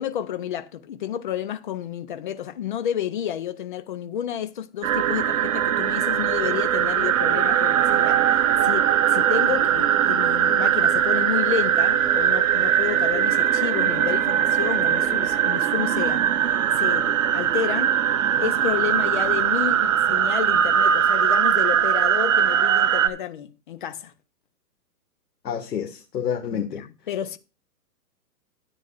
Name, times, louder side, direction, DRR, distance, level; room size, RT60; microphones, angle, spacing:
voice 1, 0.0-16.3 16.8-18.0 18.4-24.1 26.5-27.4, left 9 dB, 30° left, 0.7 m, -30 dB
sound 1, 4.8-23.1, right 9 dB, 55° right, 1.0 m, -21 dB
voice 2, 25.4-26.8, left 8 dB, 85° left, 1.9 m, -28 dB
12.5 x 9.2 x 2.5 m
hypercardioid pair, 160°, 48 cm